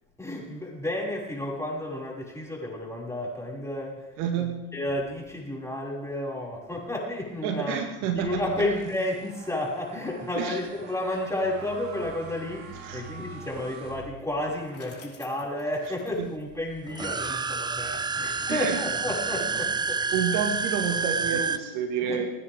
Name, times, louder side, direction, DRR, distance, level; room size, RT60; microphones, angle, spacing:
voice 1, 0.2-7.8 8.1-20.1 21.3-21.4 22.0-22.3, left 1 dB, 5° left, -4 dB, 6.5 m, -32 dB
voice 2, 4.2-4.7 7.4-8.4 10.4-10.6 12.8-13.0 16.2-16.3 18.5-18.8 20.1-22.2, right 7 dB, 65° right, 4 dB, 2.2 m, -29 dB
sound 1, 8.1-14.6, right 5 dB, 85° right, 3.7 m, -45 dB
Bicycle, 14.2-17.3, left 6 dB, 35° left, 4.5 m, -52 dB
sound 2, 16.9-21.6, right 4 dB, 10° right, 0.5 m, -29 dB
26.5 x 10.0 x 3.8 m, 1.0 s
hypercardioid pair, 85°, 38 cm